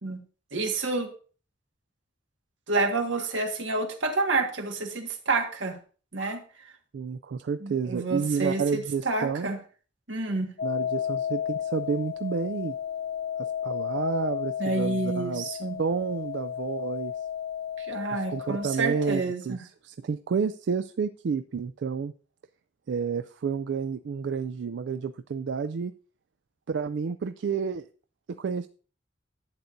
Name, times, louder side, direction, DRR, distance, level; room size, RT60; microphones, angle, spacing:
voice 1, 0.5-1.1 2.7-5.7 6.1-6.4 7.6-9.6 10.1-10.5 14.6-15.8 17.8-19.6, right 3 dB, 85° right, 4 dB, 1.6 m, -29 dB
voice 2, 6.9-9.5 10.6-12.7 13.6-15.4 15.8-17.1 18.1-19.6 19.8-22.1 22.9-25.9 26.7-27.9 28.3-28.7, right 5 dB, 65° right, 10 dB, 0.3 m, -30 dB
sound 1, 10.6-19.2, left 9 dB, 50° left, 0.5 m, -33 dB
11.5 x 8.4 x 2.6 m, 0.38 s
head